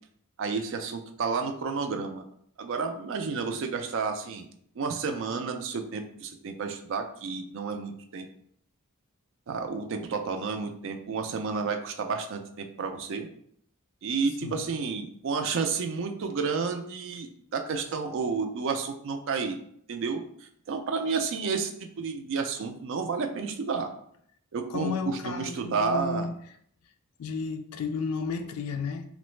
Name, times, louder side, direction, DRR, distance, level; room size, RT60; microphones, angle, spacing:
voice 1, 0.4-2.2 2.6-4.5 4.8-8.3 9.5-13.3 14.0-19.6 19.9-21.7 22.0-23.9 24.5-26.3, right 5 dB, 60° right, 6 dB, 0.4 m, -31 dB
voice 2, 24.7-26.3 27.2-29.1, left 4 dB, 80° left, 8 dB, 0.4 m, -33 dB
3.1 x 2.0 x 3.1 m, 0.66 s
head